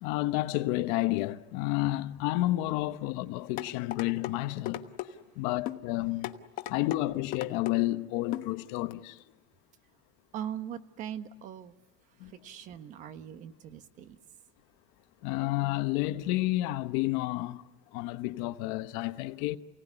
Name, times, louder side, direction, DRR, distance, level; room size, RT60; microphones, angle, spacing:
voice 1, 0.0-4.8 5.4-6.3 6.7-9.2 12.2-12.3 15.2-17.6 17.9-19.6, left 17 dB, 80° left, 1.0 m, -30 dB
sound 1, 3.6-4.3 4.7-5.1 5.7-5.8 6.2-7.0 7.3-7.8 8.3-8.5 8.9-9.0, left 14 dB, 55° left, 1.2 m, -36 dB
voice 2, 10.3-11.7 12.4-14.2, right 9 dB, 50° right, 1.3 m, -40 dB
28.5 x 17.5 x 10.0 m
cardioid pair, 145°, 17 cm